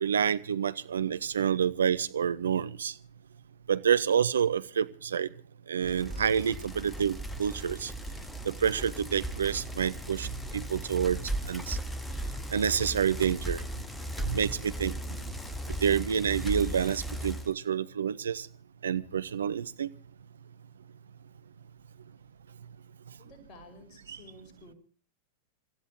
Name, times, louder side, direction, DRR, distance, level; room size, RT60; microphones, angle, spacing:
voice 1, 0.0-2.9 3.7-5.3 5.7-7.9 8.4-10.3 10.5-11.2 11.5-11.8 12.5-13.6 14.2-15.0 15.8-18.5 18.8-19.9, right 8 dB, 70° right, 14 dB, 0.8 m, -28 dB
Bicycle, 5.8-17.5, right 1 dB, 5° left, 1.4 m, -37 dB
voice 2, 23.1-24.8, left 2 dB, 35° left, 4 dB, 5.8 m, -53 dB
28.0 x 14.5 x 3.0 m, 0.39 s
figure-of-eight pair, 90°, 0 cm